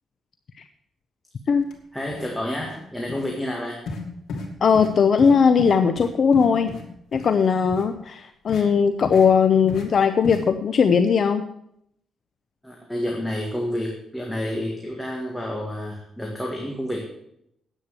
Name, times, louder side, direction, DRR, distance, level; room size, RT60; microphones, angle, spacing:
sound 1, 1.6-1.7 2.1-2.3 2.6-2.8 3.1-3.2 3.9-4.0 4.3-4.5 4.7-4.9 5.2-5.3 5.6-6.8 7.1-7.3 7.7-7.8 8.5-8.6 9.0-9.3 9.7-9.8 10.2-10.4, left 3 dB, 75° left, 3.0 m, -34 dB
voice 1, 1.9-3.8 12.6-17.0, left 1 dB, 5° left, -1 dB, 2.0 m, -29 dB
voice 2, 4.6-6.7 7.1-11.4, left 6 dB, 45° left, 8 dB, 0.7 m, -19 dB
10.0 x 8.6 x 8.2 m, 0.75 s
cardioid pair, 135°, 0 cm